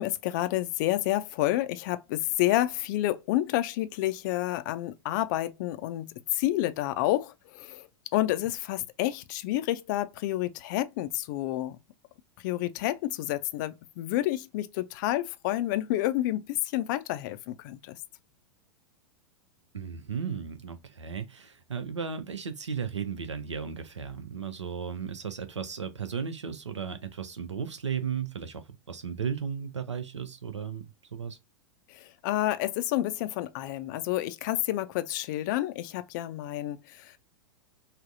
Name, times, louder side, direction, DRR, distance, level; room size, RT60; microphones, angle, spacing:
voice 1, 0.0-11.8 12.4-18.0 31.9-37.2, left 15 dB, 40° left, 0.4 m, -29 dB
voice 2, 19.7-31.4, right 7 dB, 80° right, 0.6 m, -35 dB
3.3 x 2.0 x 2.7 m
figure-of-eight pair, 95°, 15 cm